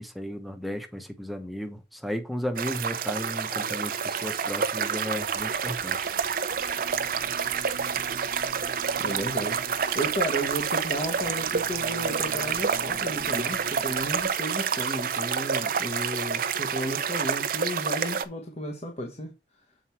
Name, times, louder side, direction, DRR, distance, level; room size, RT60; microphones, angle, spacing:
voice 1, 0.0-6.1, equal, ahead, 1.0 m, -34 dB
sound 1, 2.6-18.2, right 6 dB, 50° right, 0.6 m, -28 dB
sound 2, 5.1-14.3, right 1 dB, 70° right, 1.2 m, -47 dB
voice 2, 9.0-9.6 9.9-19.3, equal, 35° left, 1.2 m, -33 dB
7.7 x 4.6 x 4.4 m
head